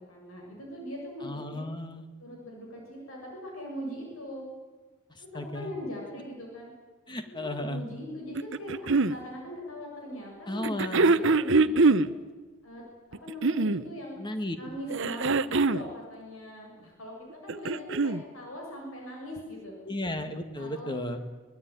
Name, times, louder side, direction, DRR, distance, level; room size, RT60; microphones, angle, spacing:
voice 1, 0.0-1.6 2.2-4.4 5.2-6.7 7.1-12.1 12.6-12.8 13.1-14.1 14.6-17.1 17.4-19.7 20.6-21.2, equal, 70° left, -1 dB, 6.9 m, -41 dB
voice 2, 1.2-2.1 5.2-5.7 7.1-7.8 10.5-11.1 14.2-14.6 19.8-21.2, left 1 dB, 20° left, 8 dB, 1.9 m, -34 dB
sound 1, 8.4-9.2 10.6-12.1 13.1-13.9 14.9-15.9 17.3-18.2 19.4-19.5, right 3 dB, 60° right, 0.8 m, -23 dB
24.0 x 20.0 x 9.5 m, 1.3 s
head